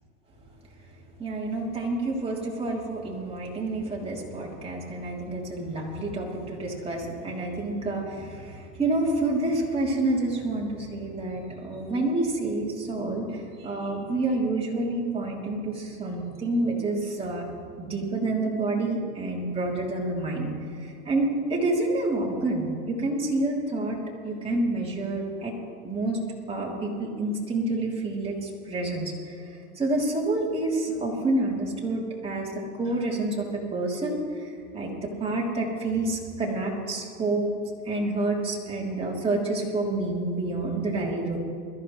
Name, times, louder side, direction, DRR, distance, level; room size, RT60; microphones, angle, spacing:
voice 1, 1.2-13.3 13.6-17.4 17.8-20.5 21.0-24.0 24.2-25.5 25.8-26.2 26.5-29.0 29.8-32.5 32.8-33.4 33.7-34.2 34.7-34.9 35.2-37.5 37.8-41.4, right 2 dB, 10° right, -4 dB, 3.2 m, -28 dB
21.5 x 14.0 x 3.2 m, 2.3 s
hypercardioid pair, 130°, 46 cm